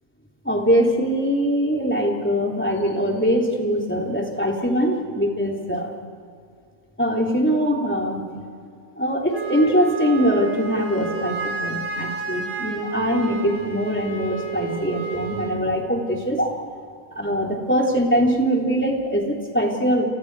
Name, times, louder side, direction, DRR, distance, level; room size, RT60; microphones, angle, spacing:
voice 1, 0.4-5.9 7.0-8.3 9.0-16.5 17.1-20.0, equal, 10° left, -1 dB, 3.3 m, -22 dB
Wind instrument woodwind instrument, 9.3-15.6, right 4 dB, 10° right, 4.2 m, -30 dB
30.0 x 29.5 x 4.8 m, 2.4 s
omnidirectional pair, 1.5 m